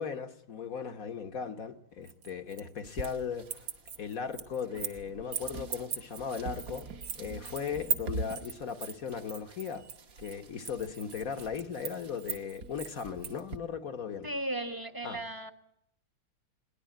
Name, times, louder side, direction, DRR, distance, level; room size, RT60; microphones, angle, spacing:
voice 1, 0.0-3.7 4.0-6.9 7.1-9.8 10.2-14.3 15.0-15.2, left 6 dB, 50° left, 1.4 m, -37 dB
sound 1, 2.1-3.2 3.5-5.0 5.3-13.4, right 7 dB, 65° right, 2.1 m, -39 dB
sound 2, 2.8-13.6, right 2 dB, 50° right, 1.6 m, -45 dB
voice 2, 14.2-15.5, right 1 dB, 15° right, 1.0 m, -36 dB
21.5 x 18.5 x 9.2 m
omnidirectional pair, 2.2 m